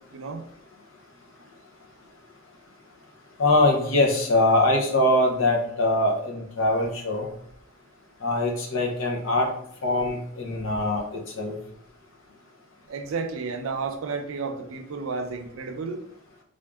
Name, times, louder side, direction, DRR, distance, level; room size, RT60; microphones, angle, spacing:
voice 1, 0.1-0.4 12.9-16.0, right 4 dB, 80° right, 6 dB, 0.5 m, -32 dB
voice 2, 3.4-7.3 8.2-9.5 9.8-11.6, left 2 dB, 70° left, 1 dB, 0.8 m, -23 dB
3.5 x 2.5 x 3.4 m, 0.70 s
head